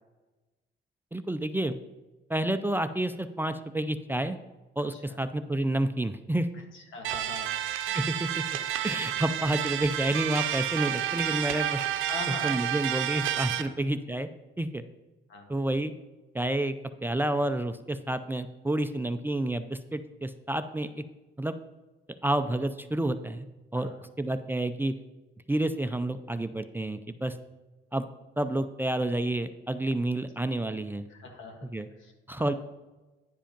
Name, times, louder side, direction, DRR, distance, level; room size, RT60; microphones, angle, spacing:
voice 1, 1.1-1.8 2.3-4.4 4.8-6.5 7.9-8.4 8.8-11.8 12.4-14.3 14.6-14.8 15.5-15.9 16.3-16.8 17.0-21.0 21.4-21.6 22.2-23.5 23.7-23.9 24.2-24.9 25.5-27.4 27.9-28.1 28.4-31.1 31.6-31.9 32.3-32.5, right 1 dB, 10° right, 9 dB, 0.4 m, -29 dB
voice 2, 6.7-7.6 7.9-8.0 8.8-9.0 12.1-12.6 13.1-13.2 13.6-13.7 15.3-15.5 23.7-24.0 31.1-31.7 32.0-32.5, left 3 dB, 75° left, 3 dB, 1.6 m, -43 dB
sound 1, 7.0-13.6, right 11 dB, 85° right, 0.6 m, -30 dB
10.0 x 5.1 x 5.2 m, 1.1 s
cardioid pair, 90°, 20 cm